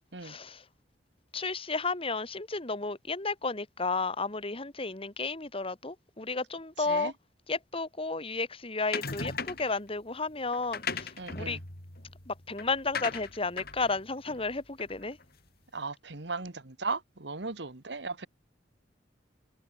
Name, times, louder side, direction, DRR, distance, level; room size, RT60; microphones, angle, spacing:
voice 1, 0.2-0.6 1.3-7.1 7.5-11.6 12.3-15.2, left 3 dB, 30° left, 2.2 m, -33 dB
voice 2, 6.8-7.1 11.2-11.6 15.7-18.3, right 4 dB, 70° right, 1.6 m, -37 dB
sound 1, 8.9-9.8 10.5-15.2, left 5 dB, 55° left, 4.9 m, -38 dB
head